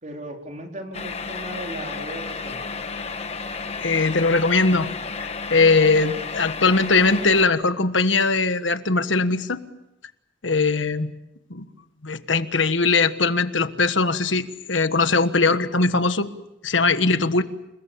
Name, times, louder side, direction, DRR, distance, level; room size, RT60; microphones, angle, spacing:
voice 1, 0.0-2.6, right 1 dB, 40° right, 2 dB, 4.3 m, -36 dB
sound 1, 0.9-7.5, left 4 dB, 35° left, 1.3 m, -32 dB
voice 2, 3.8-4.9 5.1-9.6 10.4-11.1 11.5-11.7 12.0-16.3 16.6-17.4, left 3 dB, 90° left, 11 dB, 1.4 m, -20 dB
29.5 x 21.0 x 7.0 m, 0.89 s
head